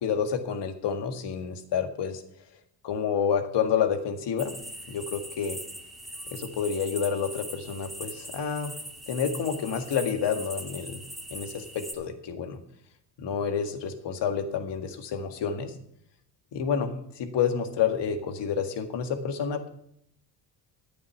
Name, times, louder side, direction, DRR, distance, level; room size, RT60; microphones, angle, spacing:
voice 1, 0.0-2.2 2.8-4.6 4.9-5.6 6.3-8.7 9.1-11.0 11.3-12.6 13.2-15.7 16.5-16.9 17.2-19.7, left 7 dB, 65° left, 6 dB, 1.9 m, -29 dB
sound 1, 4.4-11.9, equal, ahead, 2.2 m, -41 dB
10.5 x 8.6 x 7.2 m, 0.69 s
supercardioid pair, 70°, 46 cm